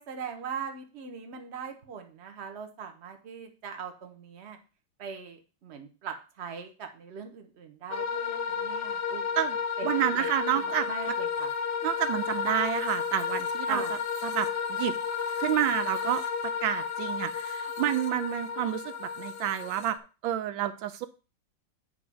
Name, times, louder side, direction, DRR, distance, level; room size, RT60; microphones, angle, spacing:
voice 1, 0.0-4.6 5.0-9.4 9.8-11.5 13.7-13.9, right 6 dB, 40° right, 5 dB, 1.2 m, -40 dB
sound 1, 7.9-20.0, left 6 dB, 50° left, 0.8 m, -32 dB
voice 2, 9.8-11.1 11.8-13.8 14.2-15.0 15.4-16.2 16.6-20.0 20.2-21.1, right 11 dB, 80° right, 10 dB, 1.3 m, -29 dB
9.4 x 3.9 x 6.1 m, 0.33 s
omnidirectional pair, 2.1 m